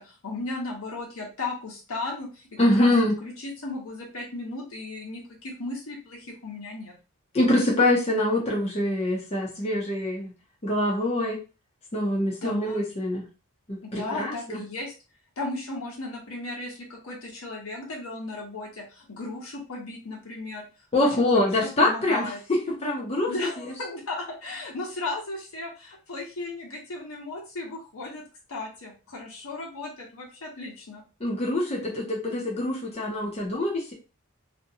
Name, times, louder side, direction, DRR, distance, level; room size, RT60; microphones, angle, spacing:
voice 1, 0.0-2.9 3.2-6.9 12.2-12.8 13.8-14.9 15.4-20.6 21.0-22.4 23.3-28.2 28.5-31.0, left 2 dB, 75° left, -2 dB, 1.1 m, -36 dB
voice 2, 2.6-3.2 7.3-10.3 10.6-11.4 11.9-13.2 13.7-14.6 20.9-22.2 22.7-23.3 31.2-33.9, left 1 dB, 30° left, -3 dB, 0.6 m, -24 dB
2.6 x 2.2 x 2.6 m, 0.31 s
head